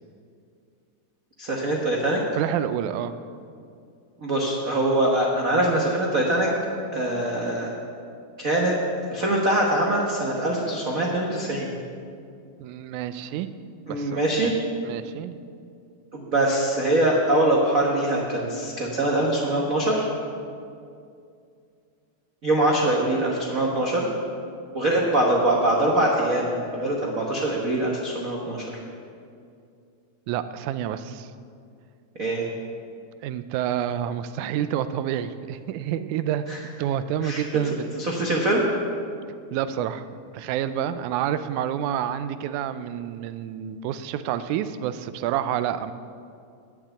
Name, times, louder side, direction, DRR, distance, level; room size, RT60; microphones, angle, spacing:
voice 1, 1.4-2.2 4.2-6.5 6.9-7.7 8.4-8.7 9.1-11.7 13.9-14.5 16.1-20.1 22.4-24.1 24.7-28.7 32.2-32.5 36.5-36.6 37.2-37.6 38.0-38.6, right 1 dB, 65° right, -2 dB, 0.8 m, -23 dB
voice 2, 2.4-3.1 12.6-13.5 13.9-14.5 14.8-15.3 30.3-31.3 33.2-36.5 36.8-37.9 39.5-40.1 40.3-45.9, right 10 dB, 85° right, 12 dB, 2.0 m, -28 dB
10.5 x 7.3 x 8.1 m, 2.4 s
omnidirectional pair, 3.4 m